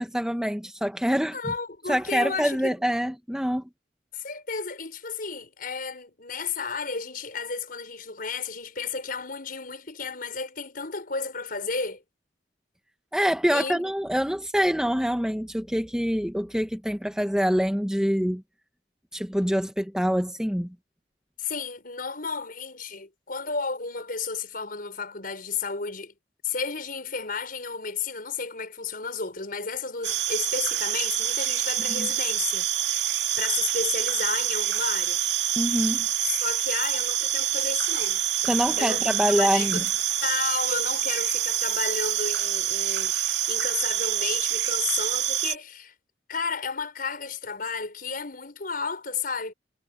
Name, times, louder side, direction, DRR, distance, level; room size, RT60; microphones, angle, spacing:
voice 1, 0.0-1.4 1.9-3.6 13.1-18.4 19.1-20.7 32.0-32.1 35.6-36.1 38.4-39.8, equal, 5° right, 1.0 m, -25 dB
voice 2, 1.3-2.8 4.1-12.0 13.5-13.9 21.4-26.1 26.4-33.0 33.4-35.2 36.3-45.9 46.3-49.5, left 5 dB, 50° left, 5.8 m, -33 dB
sound 1, 30.0-45.6, right 11 dB, 70° right, 2.1 m, -26 dB
head